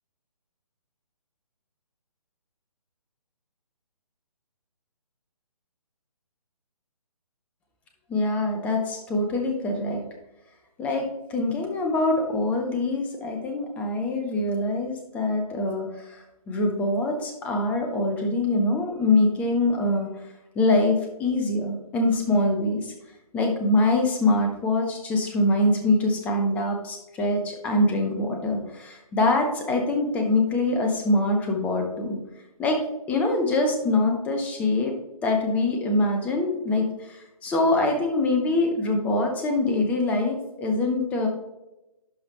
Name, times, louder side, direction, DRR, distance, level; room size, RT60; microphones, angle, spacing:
voice 1, 8.1-10.0 10.8-11.0 11.3-20.1 20.5-22.9 23.3-32.2 32.6-32.8 33.1-35.0 35.2-41.3, left 2 dB, 5° left, 3 dB, 0.7 m, -24 dB
11.0 x 5.2 x 2.9 m, 0.95 s
figure-of-eight pair, 140°, 19 cm